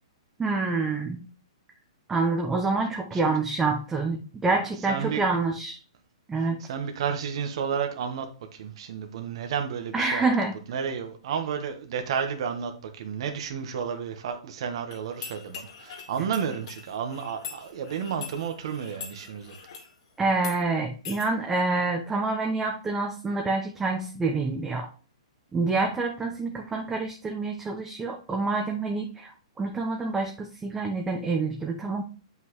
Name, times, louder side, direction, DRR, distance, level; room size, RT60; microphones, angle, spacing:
voice 1, 0.4-1.2 2.1-5.8 6.3-6.6 9.9-10.5 20.2-24.9 25.5-29.3 29.6-32.0, right 3 dB, 10° right, 1 dB, 0.9 m, -27 dB
voice 2, 4.9-5.2 6.6-10.2 10.7-19.5, right 7 dB, 60° right, 6 dB, 1.3 m, -32 dB
sound 1, 14.9-19.9 20.3-20.6 21.0-21.3, left 6 dB, 60° left, 2.7 m, -42 dB
7.8 x 5.6 x 3.1 m, 0.38 s
hypercardioid pair, 140°, 3 cm